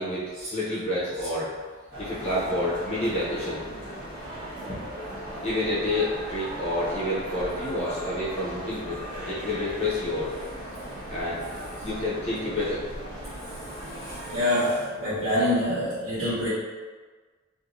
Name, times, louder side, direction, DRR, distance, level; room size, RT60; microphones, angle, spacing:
voice 1, 0.0-1.5 2.0-3.6 4.7-4.8 5.4-9.0 9.3-10.3 11.1-11.4 11.8-12.9, left 1 dB, 30° left, -9 dB, 0.8 m, -29 dB
sound 1, 1.9-14.4, equal, 25° right, 1.2 m, -37 dB
voice 2, 14.0-16.5, left 1 dB, 70° right, -14 dB, 1.1 m, -26 dB
3.4 x 2.7 x 2.5 m, 1.4 s
head